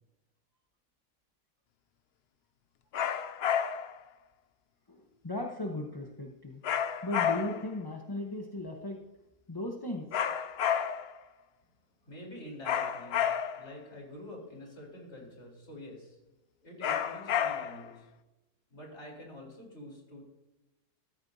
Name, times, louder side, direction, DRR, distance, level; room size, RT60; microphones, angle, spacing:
sound 1, 2.9-4.0 6.6-7.7 10.1-11.2 12.6-13.7 16.8-17.9, left 8 dB, 85° left, 0.5 m, -30 dB
voice 1, 4.9-6.6 7.0-9.0 9.5-10.1, left 1 dB, 20° left, 1 dB, 0.7 m, -37 dB
voice 2, 12.0-13.3 13.6-16.2 16.6-18.1 18.7-20.2, left 1 dB, 40° left, -1 dB, 4.3 m, -47 dB
14.0 x 14.0 x 2.8 m, 1.0 s
omnidirectional pair, 1.8 m